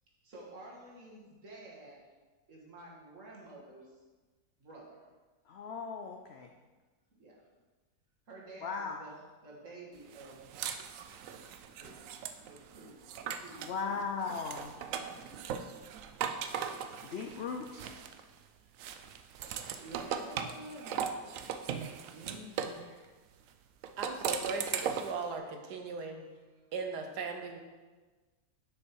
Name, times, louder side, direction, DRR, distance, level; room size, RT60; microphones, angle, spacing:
voice 1, 0.2-2.0 2.5-4.0 4.6-5.0 7.1-7.3 8.3-9.1 9.4-10.5 11.7-12.0 12.4-13.0 13.2-14.0 14.8-15.6 17.1-17.5 18.6-18.7 19.4-21.1 22.1-23.1 25.8-25.9, right 2 dB, 50° right, -4 dB, 2.0 m, -51 dB
voice 2, 5.5-6.5 8.6-9.0 13.6-14.7 17.0-17.9, left 5 dB, 70° left, 4 dB, 0.6 m, -37 dB
sound 1, 10.1-13.8 14.2-18.4 18.8-22.8 23.8-25.2, right 8 dB, 70° right, 0.8 m, -39 dB
voice 3, 24.0-26.2 26.7-27.6, right 4 dB, 90° right, 4 dB, 1.4 m, -38 dB
6.6 x 5.7 x 4.6 m, 1.3 s
omnidirectional pair, 1.7 m